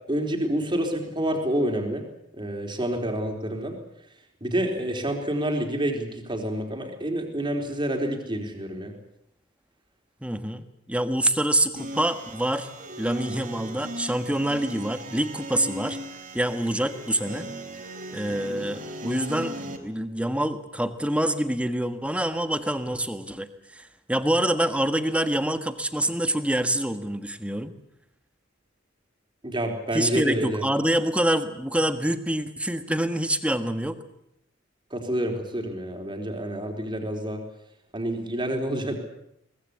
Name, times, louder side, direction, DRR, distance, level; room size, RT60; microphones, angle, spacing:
voice 1, 0.1-2.0 2.3-3.8 4.4-8.9 29.4-30.6 34.9-37.4 37.9-39.0, right 1 dB, 25° right, 3 dB, 4.1 m, -28 dB
voice 2, 10.2-12.7 13.0-16.0 16.3-17.5 18.1-27.7 29.9-34.0, right 1 dB, 5° right, 9 dB, 1.5 m, -26 dB
sound 1, 11.8-19.8, right 1 dB, 45° right, 3.4 m, -37 dB
23.5 x 19.5 x 8.5 m, 0.77 s
head